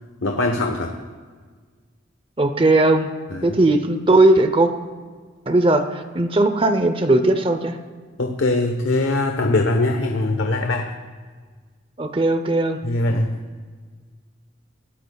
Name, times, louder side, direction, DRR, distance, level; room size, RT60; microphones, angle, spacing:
voice 1, 0.2-0.9 3.3-3.6 8.2-10.9 12.8-13.4, left 2 dB, 75° left, 3 dB, 1.1 m, -22 dB
voice 2, 2.4-3.1 3.4-4.7 5.5-7.8 12.0-12.8, right 2 dB, 25° right, 8 dB, 0.7 m, -18 dB
25.0 x 13.0 x 2.3 m, 1.5 s
head